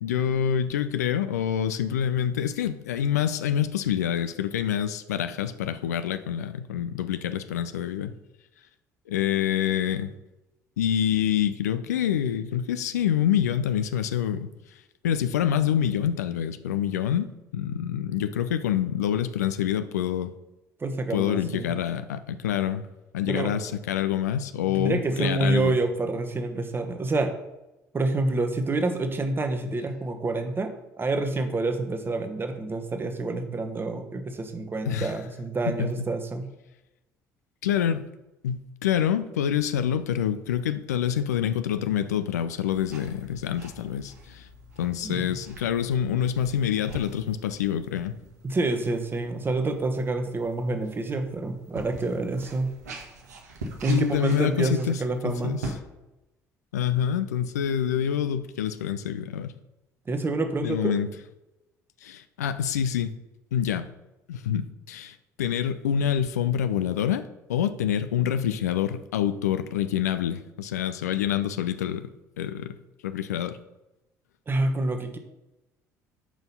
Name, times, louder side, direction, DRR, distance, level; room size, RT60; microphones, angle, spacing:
voice 1, 0.0-8.1 9.1-10.1 10.8-14.5 15.0-17.3 17.5-20.3 21.1-22.8 23.1-25.8 34.9-35.1 35.6-36.1 37.6-38.0 38.4-44.5 44.8-48.2 53.9-55.6 56.7-59.5 60.6-61.1 62.0-63.1 63.5-63.8 64.3-72.1 72.4-72.8 73.0-73.6, left 9 dB, 75° left, 11 dB, 0.4 m, -26 dB
voice 2, 20.8-21.7 23.3-23.5 24.7-27.3 27.9-30.7 31.0-36.5 45.0-45.4 48.4-52.7 53.8-55.6 60.1-60.9 74.5-75.2, right 2 dB, 25° right, 6 dB, 1.1 m, -27 dB
sound 1, 42.7-55.8, right 2 dB, 75° right, 1.1 m, -44 dB
6.2 x 5.2 x 5.5 m, 0.97 s
figure-of-eight pair, 55°, 9 cm